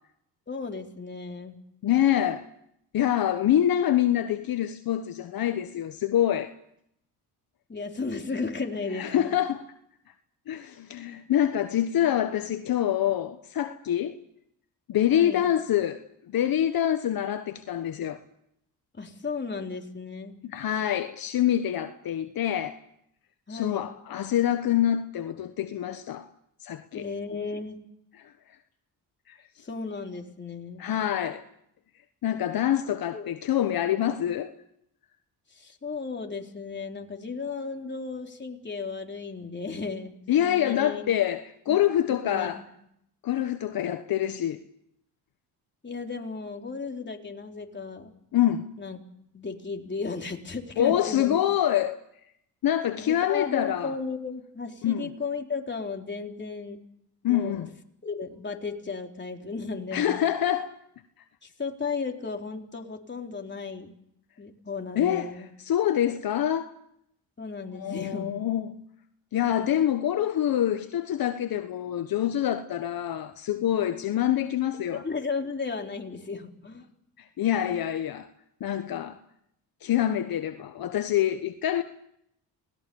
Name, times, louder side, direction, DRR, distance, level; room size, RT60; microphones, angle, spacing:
voice 1, 0.5-1.6 7.7-9.4 15.1-15.5 18.9-20.4 23.5-23.9 26.9-27.8 29.6-30.9 33.1-33.3 35.5-40.1 40.4-41.0 41.7-41.8 42.1-42.5 45.8-48.1 48.8-49.0 49.3-51.4 53.0-56.8 57.3-57.7 58.0-60.2 61.4-63.9 64.4-65.5 67.4-68.3 74.9-76.8, left 4 dB, 30° left, 3.8 m, -35 dB
voice 2, 1.8-2.5 2.9-6.5 8.9-9.6 10.5-14.2 14.9-16.0 16.3-18.2 20.4-22.8 23.5-26.3 26.6-27.0 29.3-29.4 30.8-31.4 32.2-34.5 40.3-42.6 43.2-44.6 48.3-48.7 50.8-52.0 52.6-53.9 54.8-55.1 57.2-57.7 59.9-60.7 64.9-65.3 65.6-66.7 67.7-68.7 69.3-75.0 77.2-78.3 78.6-79.2 79.8-81.8, left 11 dB, 65° left, 1.3 m, -26 dB
27.5 x 19.5 x 7.0 m
supercardioid pair, 65°, 38 cm